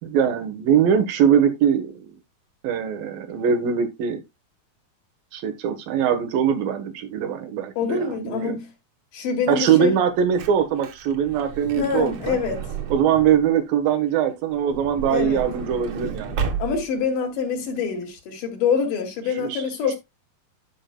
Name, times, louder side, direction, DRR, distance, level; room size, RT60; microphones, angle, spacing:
voice 1, 0.0-2.0 2.6-4.2 5.3-8.6 9.5-12.4 12.9-16.4 19.4-19.6, right 8 dB, 85° right, 3.1 m, -22 dB
voice 2, 7.8-8.7 9.1-10.0 11.7-12.6 15.1-15.4 16.6-20.0, left 6 dB, 70° left, 3.7 m, -25 dB
Truck / Door, 10.0-13.5 14.5-17.1 17.8-17.9 18.0-18.2, right 6 dB, 55° right, 2.4 m, -32 dB
12.5 x 5.9 x 2.2 m
omnidirectional pair, 4.0 m